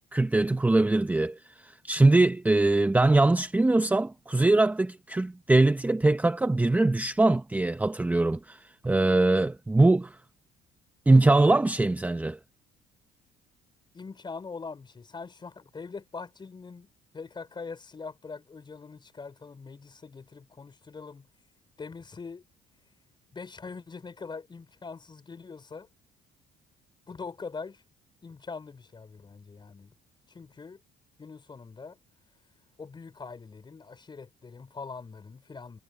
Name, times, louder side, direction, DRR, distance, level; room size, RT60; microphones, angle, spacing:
voice 1, 0.1-10.2 11.1-12.4, right 2 dB, 10° right, 0.7 m, -22 dB
voice 2, 13.9-16.9 17.1-21.3 21.8-22.4 23.3-25.9 27.1-27.8 28.2-29.9 30.3-30.8 31.2-32.0 32.8-35.8, left 4 dB, 25° left, 5.0 m, -42 dB
cardioid pair, 110°, 17 cm